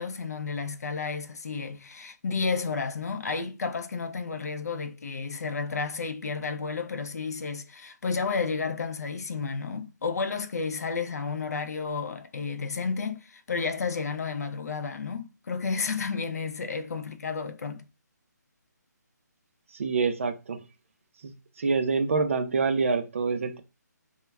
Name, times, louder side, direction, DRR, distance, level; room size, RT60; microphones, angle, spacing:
voice 1, 0.0-17.9, left 5 dB, 60° left, 0.4 m, -32 dB
voice 2, 19.7-20.6 21.2-21.3 21.6-23.6, right 4 dB, 45° right, 0.4 m, -26 dB
2.2 x 2.1 x 3.2 m
hypercardioid pair, 165°, 10 cm